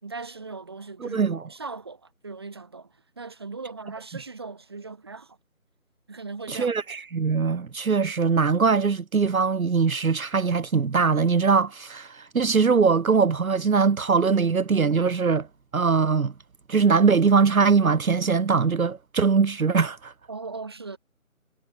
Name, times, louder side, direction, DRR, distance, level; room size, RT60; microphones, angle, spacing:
voice 1, 0.0-5.4 6.1-6.7 20.3-21.0, right 4 dB, 20° right, 4.3 m, -39 dB
voice 2, 1.0-1.4 6.5-15.5 15.7-16.3 16.7-20.1, right 5 dB, 75° right, 0.9 m, -21 dB
figure-of-eight pair, 175°, 42 cm